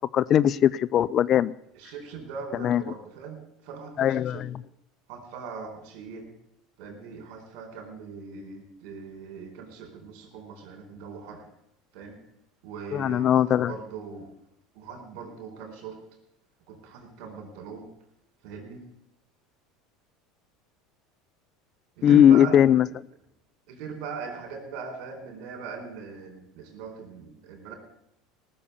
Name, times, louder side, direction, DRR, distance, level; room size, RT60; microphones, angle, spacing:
voice 1, 0.1-1.5 2.6-2.8 4.0-4.5 12.9-13.7 22.0-22.9, left 10 dB, 45° left, 0.4 m, -19 dB
voice 2, 1.7-4.5 5.1-6.3 6.8-11.5 11.9-12.2 12.6-14.3 14.7-16.0 16.7-17.9 18.4-18.8 22.0-22.9 23.7-27.7, right 5 dB, 65° right, 4.3 m, -40 dB
19.0 x 7.0 x 6.9 m
hypercardioid pair, 85°, 0 cm